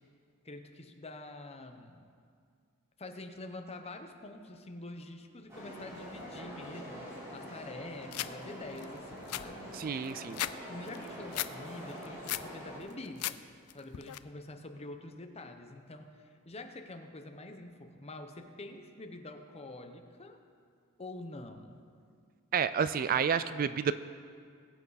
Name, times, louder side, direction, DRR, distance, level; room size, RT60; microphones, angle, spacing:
voice 1, 0.4-2.1 3.0-10.2 10.7-13.4 13.7-20.4 21.0-21.8, left 2 dB, 30° left, 5 dB, 0.9 m, -46 dB
sound 1, 5.5-12.8, equal, 15° right, 3.1 m, -45 dB
sound 2, 8.1-8.3 8.8-8.9 9.1-10.6 10.9-11.5 11.9-12.5 12.9-13.4 13.7-14.2, left 14 dB, 75° left, 0.4 m, -36 dB
voice 2, 9.7-10.4 22.5-23.9, right 7 dB, 40° right, 13 dB, 0.3 m, -30 dB
21.0 x 8.3 x 4.1 m, 2.2 s
head